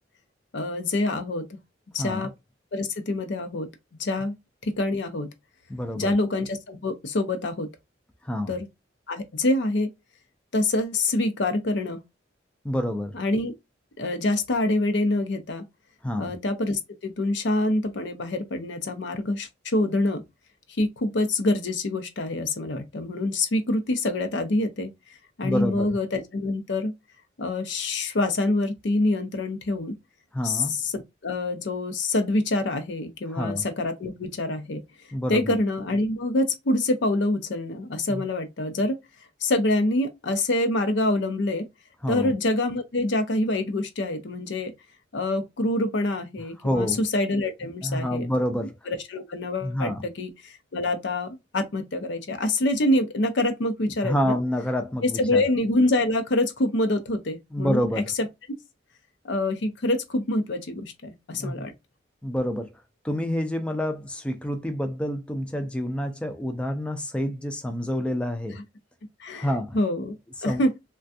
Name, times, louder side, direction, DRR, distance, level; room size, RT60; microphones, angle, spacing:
voice 1, 0.5-1.5 1.9-2.3 2.7-3.7 4.0-4.3 4.6-5.3 6.0-7.7 8.5-8.7 9.1-9.9 10.5-12.0 13.1-13.5 14.0-15.6 16.2-20.2 20.8-24.9 25.4-26.9 27.4-29.9 30.4-34.8 35.3-39.0 39.4-41.7 42.1-44.7 45.1-48.3 48.6-54.3 55.0-57.9 58.2-58.3 59.2-61.7 69.2-69.5 69.7-70.2 70.4-70.7, left 2 dB, 65° left, 0.6 m, -26 dB
voice 2, 5.7-6.1 8.2-8.5 12.6-13.1 16.0-16.3 25.4-26.0 30.3-30.7 33.3-33.6 35.1-35.6 38.1-38.2 42.0-42.3 46.6-47.0 47.8-48.7 49.6-50.0 54.0-55.4 57.5-58.1 61.3-61.7 62.2-62.7 63.0-68.6 69.3-69.8 70.4-70.6, equal, 5° left, 0.3 m, -28 dB
3.4 x 2.2 x 2.5 m
head